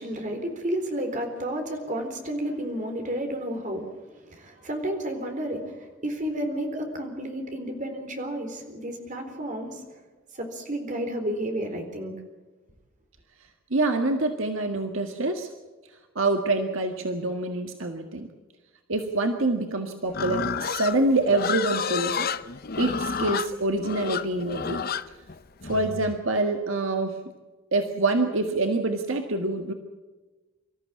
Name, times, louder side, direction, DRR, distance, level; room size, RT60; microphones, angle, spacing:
voice 1, 0.0-10.0 10.3-12.1, right 1 dB, 40° right, 4 dB, 4.1 m, -31 dB
voice 2, 13.7-15.5 16.2-18.3 18.9-22.3 22.8-24.8 25.6-27.2 27.7-29.7, right 2 dB, 75° right, 5 dB, 1.7 m, -26 dB
Livestock farm animals working animals, 20.1-26.2, left 6 dB, 45° left, 0.7 m, -30 dB
25.0 x 14.5 x 8.4 m, 1.3 s
head